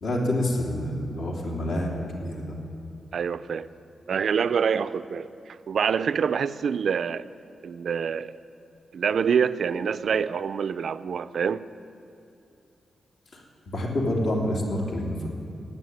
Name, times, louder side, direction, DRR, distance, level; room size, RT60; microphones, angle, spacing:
voice 1, 0.0-2.6 13.3-15.3, left 1 dB, 70° left, -1 dB, 3.0 m, -28 dB
voice 2, 3.1-3.7 4.1-7.3 7.6-8.4 8.9-11.7, right 6 dB, 60° right, 14 dB, 0.4 m, -26 dB
16.0 x 9.3 x 9.4 m, 2.6 s
wide cardioid pair, 165°, 0 cm